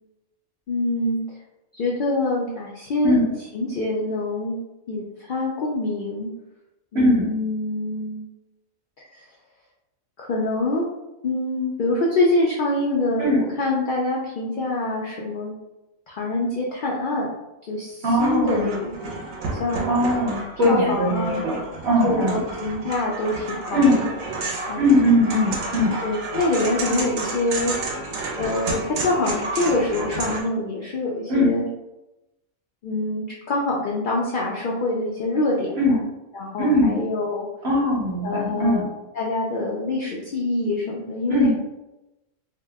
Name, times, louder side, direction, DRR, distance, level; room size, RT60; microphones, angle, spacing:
voice 1, 0.7-1.2 1.7-3.2 3.5-4.6 4.9-6.3 6.9-8.3 9.1-9.3 10.2-10.8 11.2-15.6 16.1-17.3 17.7-19.2 19.4-19.8 20.7-21.4 22.0-24.0 24.7-24.9 26.0-27.7 28.3-31.7 32.8-35.8 36.3-37.5 38.2-41.5, left 2 dB, 80° left, -3 dB, 0.4 m, -25 dB
voice 2, 3.0-3.3 6.9-7.3 13.2-13.4 18.0-18.7 19.8-21.6 21.8-22.4 23.7-24.0 24.8-25.9 31.3-31.5 35.8-36.0 36.6-36.9 37.6-38.9 41.3-41.5, left 1 dB, 55° right, -4 dB, 1.0 m, -20 dB
sound 1, 18.2-30.4, right 3 dB, 75° right, 1.0 m, -31 dB
2.8 x 2.1 x 3.4 m, 0.97 s
omnidirectional pair, 1.4 m